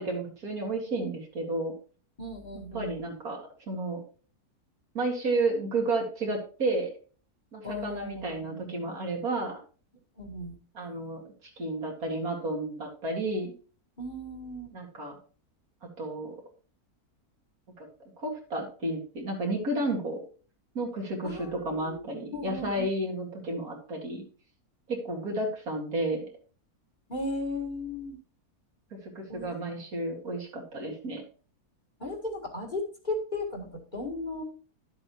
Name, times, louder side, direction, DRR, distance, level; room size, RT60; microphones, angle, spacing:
voice 1, 0.0-1.7 2.7-4.0 4.9-6.9 7.5-9.6 10.7-11.2 11.6-13.5 14.7-15.2 16.0-16.4 17.8-17.9 18.2-20.2 20.7-24.2 24.9-26.3 29.0-31.2, right 2 dB, 70° right, 0 dB, 2.8 m, -32 dB
voice 2, 2.2-3.0 7.6-8.7 10.2-10.6 14.0-14.8 21.2-22.0 22.3-22.9 27.1-28.2 29.3-29.5 32.0-34.4, left 2 dB, 30° left, -1 dB, 2.0 m, -36 dB
12.0 x 7.8 x 3.0 m, 0.39 s
omnidirectional pair, 1.6 m